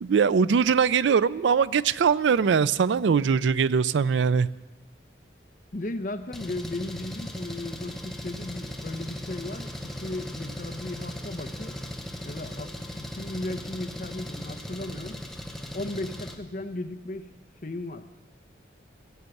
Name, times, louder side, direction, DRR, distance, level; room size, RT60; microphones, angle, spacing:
voice 1, 0.0-4.5, right 6 dB, 85° right, 18 dB, 0.4 m, -22 dB
voice 2, 5.7-11.8 12.2-15.2 15.7-17.3 17.6-18.0, left 2 dB, 45° left, 8 dB, 0.8 m, -36 dB
Engine, 6.3-16.3, left 1 dB, ahead, 0.9 m, -38 dB
16.5 x 7.1 x 7.8 m, 1.1 s
head